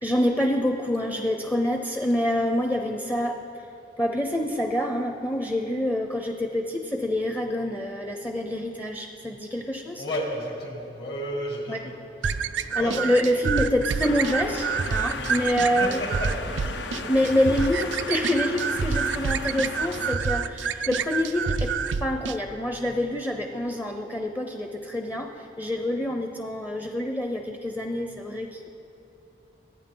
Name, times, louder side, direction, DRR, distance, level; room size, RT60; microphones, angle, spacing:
voice 1, 0.0-3.4 4.0-10.0 11.7-11.9 12.7-16.0 17.1-21.7 22.0-28.7, left 1 dB, 15° left, 4 dB, 0.6 m, -26 dB
voice 2, 10.0-12.0 12.8-13.0 15.1-17.1 17.8-17.9, equal, 65° left, -1 dB, 2.4 m, -33 dB
sound 1, 12.2-22.4, right 5 dB, 90° right, 0.4 m, -28 dB
sound 2, 14.0-20.2, left 3 dB, 85° left, 0.9 m, -35 dB
24.5 x 9.2 x 3.8 m, 2.9 s
head